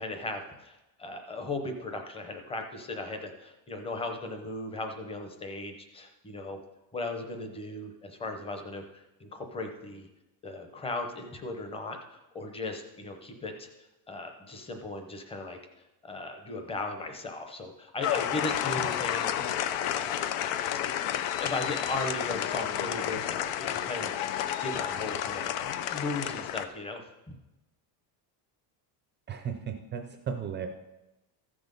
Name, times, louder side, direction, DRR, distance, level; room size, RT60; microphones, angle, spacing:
voice 1, 0.0-6.6 6.9-10.1 10.4-12.0 12.3-13.7 14.1-15.6 16.0-19.7 19.9-20.3 21.4-24.1 24.6-27.0, left 2 dB, 10° left, 5 dB, 0.8 m, -37 dB
sound 1, 18.0-26.7, left 11 dB, 85° left, 0.8 m, -31 dB
voice 2, 29.3-30.7, right 7 dB, 25° right, 5 dB, 0.4 m, -35 dB
14.5 x 6.2 x 5.3 m, 1.0 s
cardioid pair, 170°, 49 cm